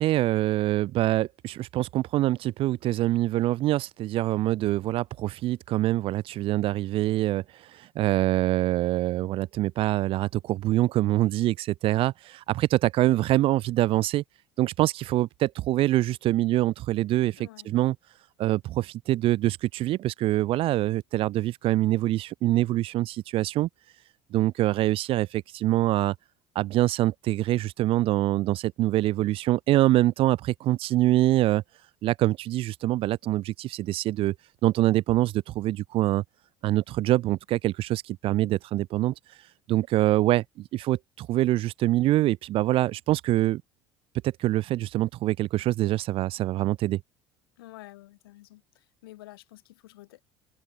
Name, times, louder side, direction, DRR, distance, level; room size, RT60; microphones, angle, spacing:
voice 1, 0.0-7.4 7.7-14.2 14.6-18.0 18.4-23.7 24.3-26.1 26.6-31.6 32.0-34.3 34.6-36.2 36.6-39.1 39.7-43.6 44.2-47.0, right 15 dB, 50° right, 0.4 m, -25 dB
voice 2, 17.4-17.7 47.6-50.2, left 18 dB, 75° left, 6.7 m, -49 dB
hypercardioid pair, 65°, 12 cm